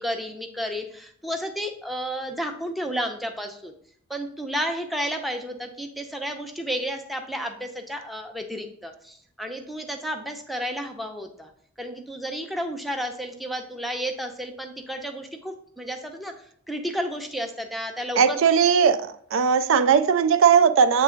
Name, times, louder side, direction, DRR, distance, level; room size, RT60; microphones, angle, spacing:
voice 1, 0.0-3.7 4.1-11.5 11.8-16.3 16.7-18.4, equal, ahead, 0.5 m, -32 dB
voice 2, 18.2-21.0, right 7 dB, 65° right, 0.4 m, -18 dB
8.2 x 3.3 x 3.8 m
head